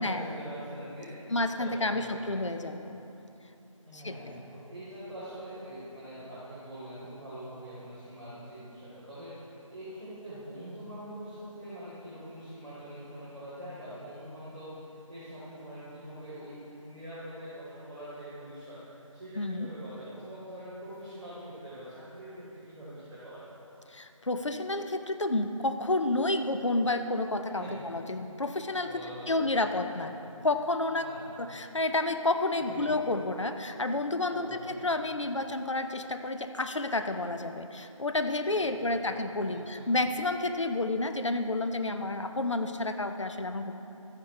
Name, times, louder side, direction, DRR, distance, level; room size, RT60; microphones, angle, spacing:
voice 1, 0.0-1.3 1.6-2.3 3.8-23.4 27.5-27.9 28.7-29.5 30.0-30.4 30.9-31.5 32.6-32.9 34.3-34.9 38.5-39.9, equal, 15° right, -19 dB, 2.1 m, -44 dB
voice 2, 1.3-3.0 3.9-4.3 19.4-19.7 23.9-28.9 29.3-30.2 30.4-31.1 31.4-43.8, left 2 dB, 60° left, 8 dB, 0.7 m, -30 dB
13.5 x 9.6 x 3.4 m, 2.9 s
figure-of-eight pair, 175°, 17 cm